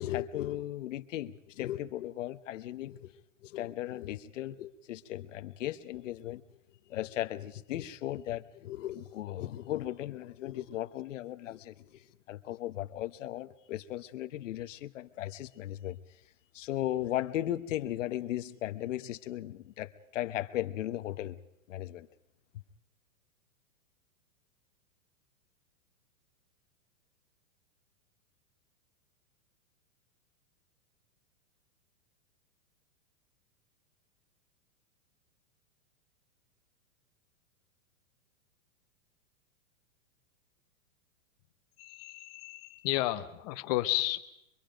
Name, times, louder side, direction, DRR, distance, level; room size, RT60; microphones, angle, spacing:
voice 1, 0.0-6.4 6.9-16.0 16.5-21.4 21.7-22.1, left 13 dB, 55° left, 10 dB, 1.1 m, -37 dB
voice 2, 41.8-44.3, left 17 dB, 25° left, 11 dB, 0.8 m, -32 dB
24.5 x 24.0 x 5.2 m, 0.83 s
supercardioid pair, 165°, 44 cm